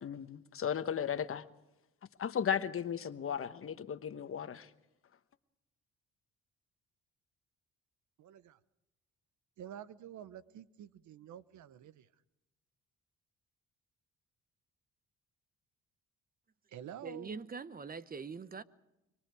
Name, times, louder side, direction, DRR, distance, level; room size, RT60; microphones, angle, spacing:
voice 1, 0.0-1.4 2.2-4.7, left 8 dB, 45° left, 1.1 m, -35 dB
voice 2, 8.2-8.6 9.6-12.1 16.7-17.4, right 10 dB, 70° right, 0.9 m, -49 dB
voice 3, 17.0-18.6, right 5 dB, 30° right, 0.9 m, -43 dB
25.5 x 23.5 x 4.8 m
cardioid pair, 90°, 30 cm